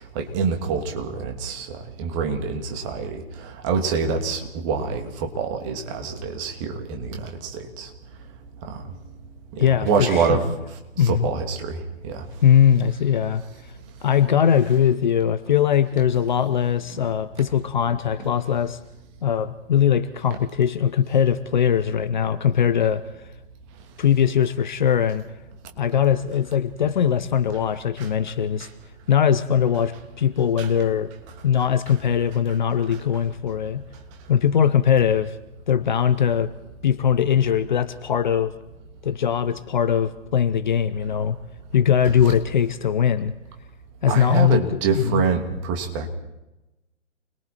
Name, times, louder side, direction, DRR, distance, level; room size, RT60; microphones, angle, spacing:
voice 1, 0.1-1.7 2.0-7.9 9.5-10.4 11.0-11.8 12.0-12.2 16.9-17.0 28.0-28.1 28.6-28.7 30.6-30.7 31.9-32.0 42.2-42.3 44.1-46.1, right 5 dB, 25° right, 3 dB, 2.8 m, -26 dB
voice 2, 9.6-10.4 11.0-11.3 12.4-13.4 14.0-18.8 19.2-23.1 24.0-25.3 25.8-28.7 29.1-31.1 31.4-33.8 34.3-35.4 35.7-36.5 36.8-38.5 39.0-41.4 41.7-43.3 44.0-45.2, left 8 dB, 40° left, 13 dB, 0.9 m, -21 dB
29.0 x 22.0 x 4.5 m, 0.97 s
figure-of-eight pair, 130°, 37 cm